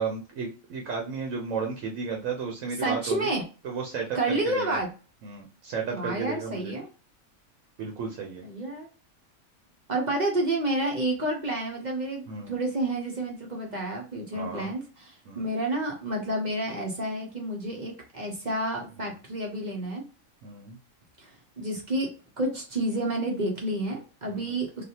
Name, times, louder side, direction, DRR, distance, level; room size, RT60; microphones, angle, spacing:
voice 1, 0.0-3.3 3.6-4.8 5.2-6.7 7.8-8.4 12.3-12.6 14.3-14.7 15.3-15.5 19.0-19.1 20.4-20.8 24.3-24.5, right 5 dB, 75° right, 1 dB, 1.1 m, -33 dB
voice 2, 2.8-3.4 4.1-4.9 5.9-6.9 8.4-8.9 9.9-20.0 21.2-22.1 22.4-24.8, right 1 dB, 40° right, 0 dB, 0.7 m, -30 dB
3.3 x 2.3 x 2.8 m, 0.35 s
omnidirectional pair, 1.4 m